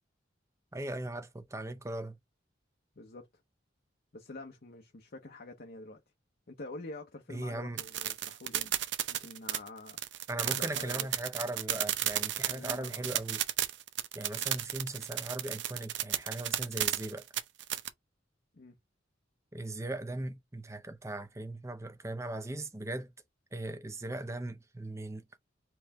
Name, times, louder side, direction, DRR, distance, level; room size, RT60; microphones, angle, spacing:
voice 1, 0.7-2.2 7.3-7.8 10.3-13.4 14.1-17.2 19.5-23.1 23.5-25.4, right 2 dB, 15° right, 0.7 m, -39 dB
voice 2, 3.0-3.3 4.1-6.0 6.5-8.7 9.1-10.0 10.4-11.1 12.5-13.1 18.5-18.8, left 2 dB, 50° left, 0.9 m, -47 dB
sound 1, 7.8-17.9, right 12 dB, 65° right, 0.7 m, -33 dB
4.5 x 3.1 x 3.5 m
head